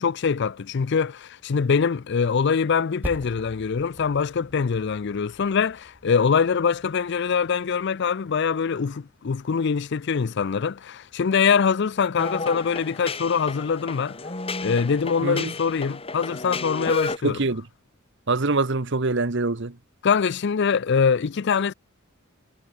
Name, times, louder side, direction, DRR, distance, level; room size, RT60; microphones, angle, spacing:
voice 1, 0.0-14.2 14.6-17.4 20.0-21.7, left 6 dB, 55° left, 0.5 m, -23 dB
Percussion, 3.0-7.9, equal, 10° right, 2.1 m, -42 dB
sound 1, 12.2-17.2, left 3 dB, 30° left, 2.9 m, -32 dB
voice 2, 15.2-15.5 17.2-17.7 18.3-19.8, right 3 dB, 60° right, 1.2 m, -24 dB
head